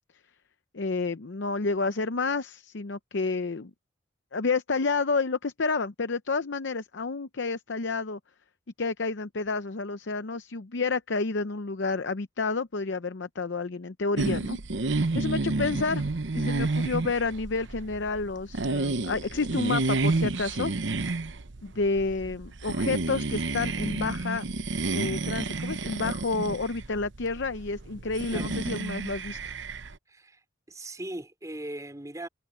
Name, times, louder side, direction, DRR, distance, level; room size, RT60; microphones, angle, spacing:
voice 1, 0.7-3.7 4.3-8.2 8.8-14.6 15.1-16.0 16.3-20.7 21.6-24.4 24.9-29.5, left 4 dB, 65° left, 0.7 m, -30 dB
sound 1, 14.2-29.9, right 3 dB, 65° right, 0.9 m, -30 dB
voice 2, 30.1-30.4 30.7-32.3, right 1 dB, 15° right, 3.8 m, -39 dB
head